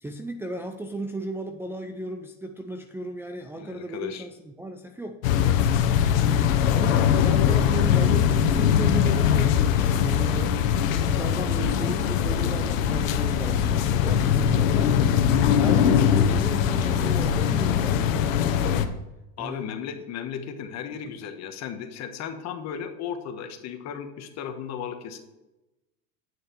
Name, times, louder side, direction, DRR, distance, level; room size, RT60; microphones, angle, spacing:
voice 1, 0.0-5.2 6.7-10.5 11.0-15.0 15.5-18.0 19.4-19.6 21.0-21.1, right 2 dB, 5° right, 2 dB, 0.5 m, -35 dB
voice 2, 3.5-4.3 19.4-25.2, left 8 dB, 45° left, 7 dB, 1.3 m, -35 dB
sound 1, 5.2-18.8, left 8 dB, 85° left, 1.0 m, -21 dB
8.9 x 6.6 x 4.6 m, 0.99 s
supercardioid pair, 120°, 38 cm